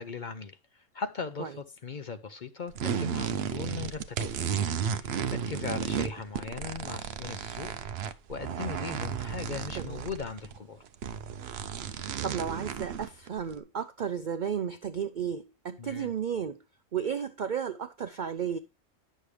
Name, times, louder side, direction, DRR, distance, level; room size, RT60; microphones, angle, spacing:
voice 1, 0.0-7.7 8.3-10.8 15.8-16.1, left 5 dB, 50° left, 0.6 m, -39 dB
sound 1, 2.7-10.6 10.9-13.6, right 7 dB, 55° right, 0.8 m, -33 dB
voice 2, 12.2-16.6 16.9-18.6, right 7 dB, 75° right, 0.4 m, -33 dB
10.0 x 6.5 x 3.2 m
omnidirectional pair, 1.4 m